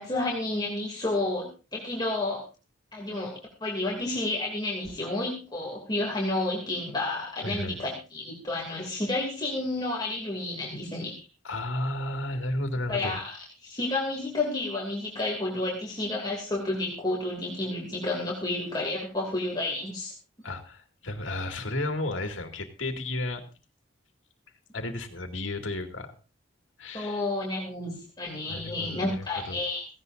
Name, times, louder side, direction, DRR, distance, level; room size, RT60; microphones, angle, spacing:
voice 1, 0.0-2.4 2.9-11.1 12.9-13.4 13.6-20.1 26.9-29.9, left 2 dB, 20° left, -3 dB, 2.9 m, -31 dB
voice 2, 7.4-7.8 11.4-13.2 20.4-23.4 24.7-26.1 26.8-27.2 28.5-29.6, left 1 dB, 85° left, 5 dB, 2.4 m, -33 dB
17.5 x 16.0 x 2.7 m, 0.31 s
head